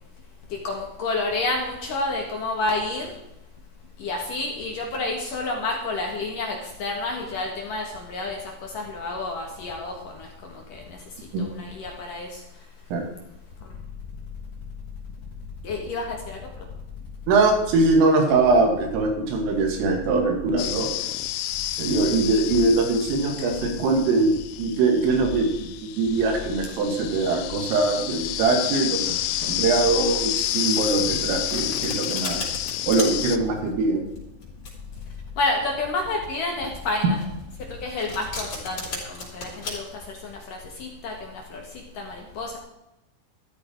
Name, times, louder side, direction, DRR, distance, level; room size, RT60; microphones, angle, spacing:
voice 1, 0.5-3.1 4.0-10.3 10.7-10.8 11.4-12.3 15.6-16.4 35.4-37.2 37.8-39.8 40.2-40.4 40.8-41.6 42.0-42.6, left 2 dB, 60° left, 0 dB, 2.5 m, -29 dB
voice 2, 17.3-20.9 21.8-24.3 24.6-29.1 29.4-32.5 32.9-34.0, right 3 dB, 85° right, 3 dB, 4.8 m, -22 dB
sound 1, 20.6-33.4, left 13 dB, 85° left, 3.3 m, -30 dB
Domestic sounds home sounds, 31.0-39.7, left 3 dB, 35° left, 5.2 m, -36 dB
13.5 x 13.5 x 4.6 m, 0.90 s
omnidirectional pair, 5.7 m